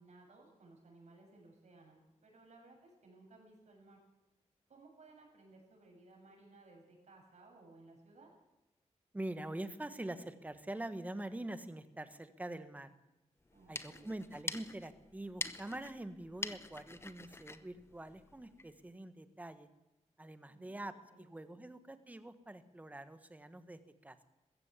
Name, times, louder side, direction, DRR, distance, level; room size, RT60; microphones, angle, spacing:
voice 1, 0.0-4.0 4.7-8.3 13.5-14.1 20.4-20.7 21.1-21.2, right 2 dB, 75° right, 1 dB, 7.5 m, -60 dB
voice 2, 9.1-12.9 13.7-19.7 20.2-20.9 21.2-24.2, right 1 dB, 15° right, 10 dB, 1.3 m, -45 dB
sound 1, 13.4-18.8, left 2 dB, 20° left, 0.9 m, -46 dB
20.5 x 15.5 x 8.3 m, 0.98 s
wide cardioid pair, 175°, 12 cm